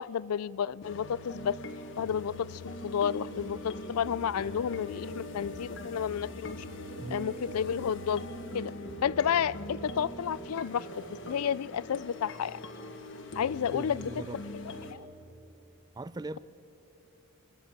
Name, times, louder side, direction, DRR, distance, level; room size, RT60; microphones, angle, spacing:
voice 1, 0.0-1.6 2.0-6.6 7.1-8.2 8.5-8.7 9.0-12.6 13.4-14.1 14.9-15.0, left 8 dB, 80° left, 21 dB, 0.4 m, -31 dB
sound 1, 0.8-14.9, left 1 dB, 55° left, 1.5 m, -42 dB
sound 2, 4.0-11.6, right 5 dB, 85° right, 0.7 m, -50 dB
voice 2, 7.0-7.4 13.7-14.4 16.0-16.4, right 2 dB, 20° right, 16 dB, 0.4 m, -39 dB
22.5 x 14.0 x 8.9 m, 3.0 s
head